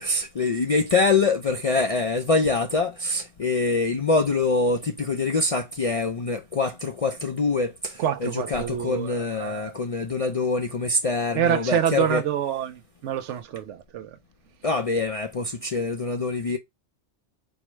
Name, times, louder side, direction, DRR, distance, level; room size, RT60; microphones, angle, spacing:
voice 1, 0.0-12.2 14.6-16.6, left 3 dB, 60° left, 0.4 m, -24 dB
voice 2, 8.0-9.7 11.3-14.1, right 9 dB, 90° right, 0.9 m, -27 dB
4.6 x 2.1 x 4.4 m
omnidirectional pair, 1.2 m